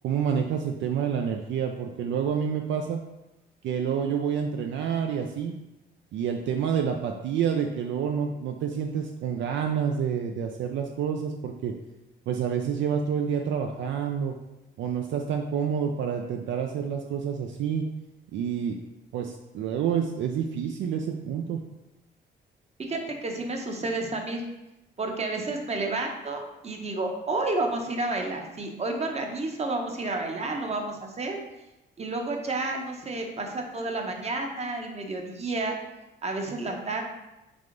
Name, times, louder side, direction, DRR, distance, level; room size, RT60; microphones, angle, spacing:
voice 1, 0.0-3.0 3.6-5.6 6.1-11.7 12.3-14.4 14.8-17.8 18.3-18.8 19.1-21.6, right 7 dB, 70° right, 3 dB, 0.4 m, -28 dB
voice 2, 22.8-24.4 25.0-31.4 32.0-35.8 36.2-37.0, right 2 dB, 30° right, 2 dB, 0.8 m, -30 dB
3.5 x 3.3 x 3.8 m, 0.97 s
cardioid pair, 90°, 20 cm